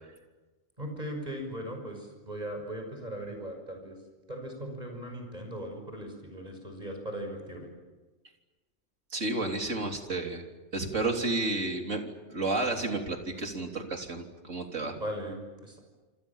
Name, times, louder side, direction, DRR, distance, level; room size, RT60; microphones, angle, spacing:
voice 1, 0.8-4.0 4.3-7.7 15.0-15.8, equal, 35° right, 3 dB, 6.3 m, -38 dB
voice 2, 9.1-10.4 10.7-12.0 12.3-15.0, right 2 dB, 85° right, 3 dB, 3.9 m, -31 dB
28.5 x 26.0 x 7.3 m, 1.2 s
omnidirectional pair, 1.3 m